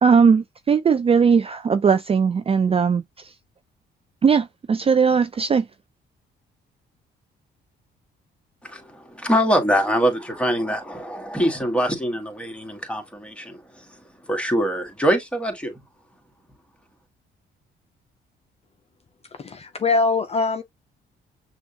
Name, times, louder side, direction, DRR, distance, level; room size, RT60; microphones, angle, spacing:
voice 1, 0.0-3.0 4.2-5.7, right 6 dB, 30° right, 0.4 m, -18 dB
voice 2, 8.6-13.8 14.3-15.7, equal, 5° left, 1.7 m, -24 dB
voice 3, 19.4-20.6, left 3 dB, 30° left, 0.6 m, -22 dB
6.1 x 2.4 x 2.9 m
cardioid pair, 90°, 20 cm